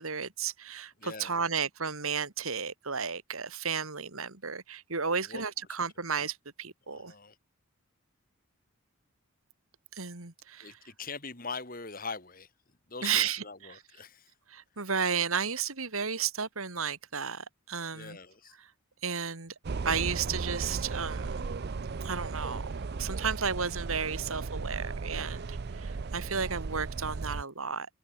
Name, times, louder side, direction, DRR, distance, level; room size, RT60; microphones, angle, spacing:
voice 1, 0.0-7.1 9.9-10.7 13.0-13.4 13.7-13.8 14.5-18.2 19.0-19.5 19.8-21.4 22.0-27.9, right 6 dB, 75° right, 2.5 m, -33 dB
voice 2, 1.0-1.4 5.3-5.4 6.9-7.4 10.6-12.5 12.9-14.3 17.9-18.6, left 4 dB, 40° left, 3.3 m, -42 dB
sound 1, 19.6-27.4, right 4 dB, 45° right, 0.5 m, -36 dB
head